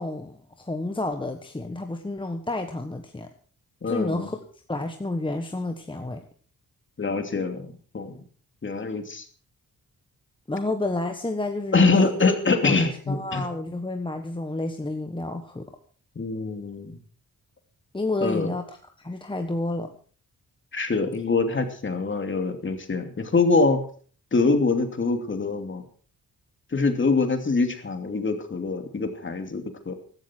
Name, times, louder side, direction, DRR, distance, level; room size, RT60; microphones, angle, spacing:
voice 1, 0.0-3.3 3.8-4.4 4.7-6.2 10.5-12.1 12.6-12.8 13.1-15.7 17.9-19.9, left 2 dB, 15° left, 5 dB, 1.4 m, -30 dB
voice 2, 3.8-4.3 7.0-8.2 8.6-9.2 11.7-13.5 16.2-17.0 18.2-18.5 20.7-23.8 24.3-25.8 26.7-29.9, left 3 dB, 35° left, 6 dB, 2.8 m, -24 dB
16.0 x 12.5 x 4.6 m, 0.44 s
cardioid pair, 105°, 33 cm